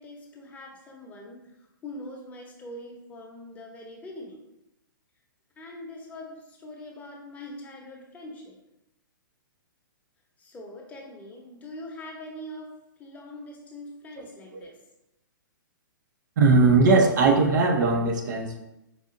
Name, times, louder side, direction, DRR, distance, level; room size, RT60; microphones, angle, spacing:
voice 1, 0.0-4.4 5.6-8.6 10.4-12.7 13.0-14.8, left 1 dB, 15° left, -1 dB, 0.8 m, -43 dB
voice 2, 16.4-18.6, right 3 dB, 55° right, 2 dB, 0.7 m, -19 dB
4.9 x 2.6 x 2.5 m, 0.90 s
hypercardioid pair, 130°, 11 cm